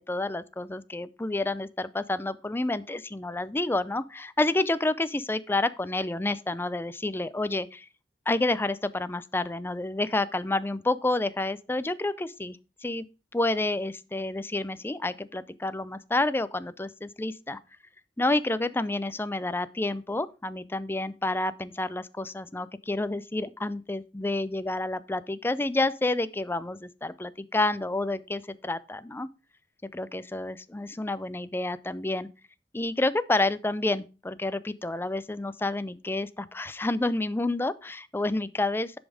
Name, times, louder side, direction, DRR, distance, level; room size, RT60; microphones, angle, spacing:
voice 1, 0.0-7.9 8.3-12.6 12.8-13.0 13.3-17.6 18.2-29.3 29.9-32.3 32.7-39.0, left 2 dB, 10° left, 0.4 m, -29 dB
10.5 x 5.4 x 4.8 m
head